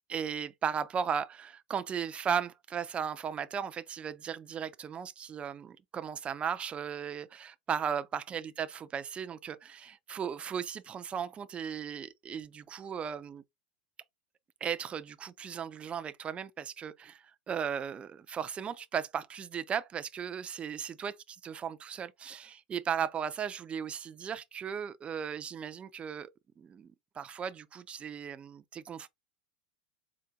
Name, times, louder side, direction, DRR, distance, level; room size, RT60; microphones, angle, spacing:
voice 1, 0.1-13.4 14.6-26.3 26.6-29.1, right 7 dB, 25° right, 0.4 m, -36 dB
4.0 x 2.1 x 3.5 m
supercardioid pair, 120°, 5 cm